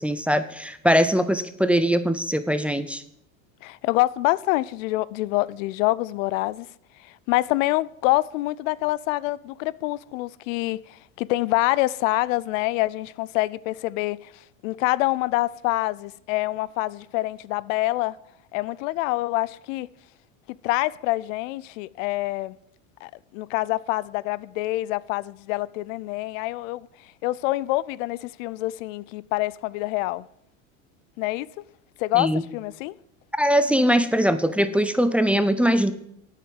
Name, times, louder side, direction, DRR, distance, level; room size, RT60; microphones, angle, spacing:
voice 1, 0.0-3.0 32.2-32.4 33.4-35.9, equal, 5° right, 0.6 m, -21 dB
voice 2, 3.6-6.7 7.3-14.3 14.6-18.2 18.5-19.9 20.6-22.6 23.0-26.9 27.2-30.3 31.2-31.5 32.0-32.9, left 18 dB, 70° left, 0.5 m, -26 dB
8.8 x 7.5 x 7.8 m
supercardioid pair, 115°, 40 cm